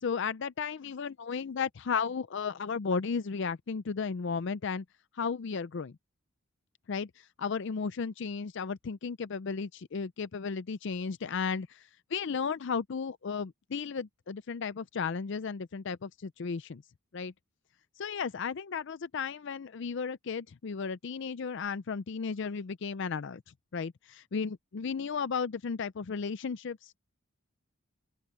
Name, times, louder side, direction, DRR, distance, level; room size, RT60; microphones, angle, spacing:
voice 1, 0.0-4.8 5.1-5.9 6.9-16.8 17.1-17.3 18.0-23.4 23.7-27.0, left 5 dB, 55° left, 0.4 m, -34 dB
open air
head